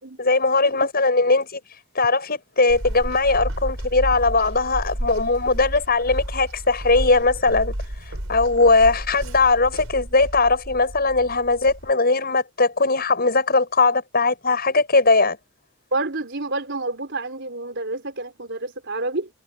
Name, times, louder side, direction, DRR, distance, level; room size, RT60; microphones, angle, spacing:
voice 1, 0.2-1.6 2.0-7.7 8.3-15.4, left 3 dB, 45° left, 7.6 m, -19 dB
sound 1, 2.7-11.9, right 1 dB, 80° right, 4.4 m, -32 dB
voice 2, 15.9-19.3, right 2 dB, 55° right, 4.4 m, -28 dB
head